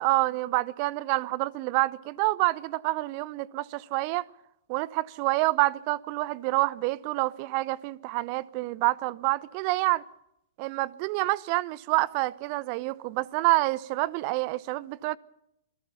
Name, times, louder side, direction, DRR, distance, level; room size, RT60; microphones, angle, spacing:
voice 1, 0.0-4.2 4.7-10.0 10.6-15.2, right 20 dB, 40° right, 0.8 m, -27 dB
27.0 x 19.0 x 5.7 m
figure-of-eight pair, 105°, 0 cm